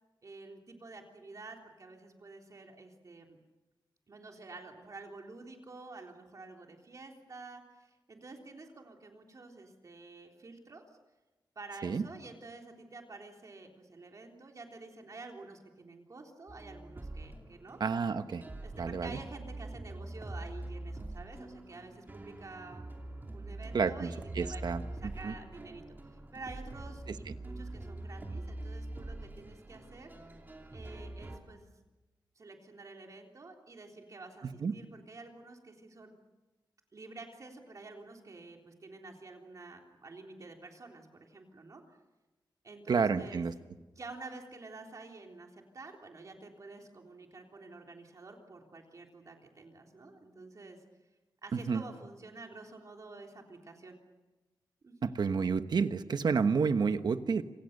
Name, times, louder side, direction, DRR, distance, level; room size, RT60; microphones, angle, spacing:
voice 1, 0.2-3.4 4.1-10.9 11.6-17.8 18.6-22.9 23.3-30.1 30.7-31.7 32.4-36.1 36.9-42.0 42.6-43.4 44.0-50.8 51.4-54.0 54.8-55.1, right 3 dB, 45° right, 2 dB, 3.5 m, -49 dB
sound 1, 16.5-31.4, right 2 dB, 25° right, 2.9 m, -44 dB
voice 2, 17.8-18.4 18.8-19.1 23.7-24.1 24.3-25.3 27.1-27.2 34.4-34.7 42.9-43.5 51.5-51.8 55.0-57.4, right 5 dB, 65° right, 9 dB, 1.3 m, -30 dB
27.5 x 26.5 x 6.7 m, 1.2 s
wide cardioid pair, 165°, 8 cm